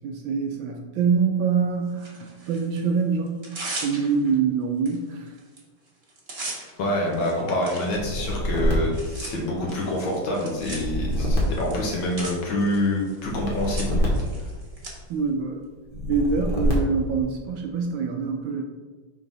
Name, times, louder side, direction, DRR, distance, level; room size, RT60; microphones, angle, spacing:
voice 1, 0.0-3.5 3.8-5.4 15.1-15.6 16.1-18.6, right 5 dB, 75° right, 3 dB, 1.2 m, -25 dB
Tearing, 2.0-2.8 3.3-4.3 4.9-5.0 5.3-5.6 5.9-14.9, right 2 dB, 35° right, 1.2 m, -39 dB
voice 2, 6.8-14.1, left 1 dB, 65° left, -2 dB, 1.9 m, -26 dB
sound 1, 7.9-9.9 10.5-12.5 13.2-15.1 15.9-17.2, equal, 30° left, 1.2 m, -26 dB
4.8 x 3.8 x 5.3 m, 1.4 s
omnidirectional pair, 2.4 m